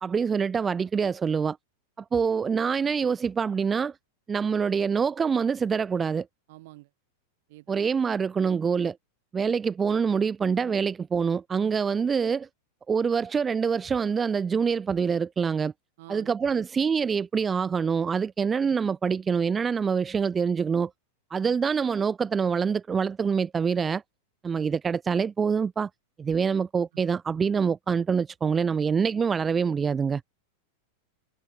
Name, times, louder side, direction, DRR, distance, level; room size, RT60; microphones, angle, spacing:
voice 1, 0.0-1.6 2.1-4.0 4.3-6.3 7.7-9.0 9.3-12.5 12.9-15.7 16.1-20.9 21.3-24.0 24.4-25.9 26.2-30.2, right 6 dB, 20° right, 0.5 m, -25 dB
voice 2, 6.5-6.9 7.5-7.8 16.0-16.6 26.9-27.0, right 19 dB, 50° right, 5.8 m, -48 dB
figure-of-eight pair, 90°, 0 cm